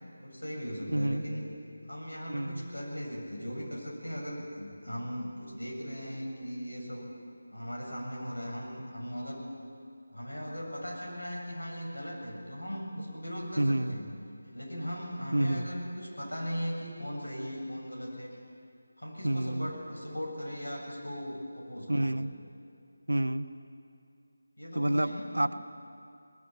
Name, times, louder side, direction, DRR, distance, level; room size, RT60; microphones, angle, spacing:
voice 1, 0.2-1.4 1.9-7.1 7.5-9.4 10.1-14.1 14.5-18.4 19.0-22.2 24.6-25.3, equal, 70° left, -1 dB, 7.5 m, -38 dB
voice 2, 0.9-1.2 2.3-2.7 13.6-14.0 15.3-15.7 19.2-19.7 21.9-22.3 23.1-23.5 24.7-25.6, right 1 dB, 70° right, 10 dB, 1.1 m, -28 dB
23.0 x 20.0 x 8.7 m, 2.4 s
figure-of-eight pair, 160°, 0 cm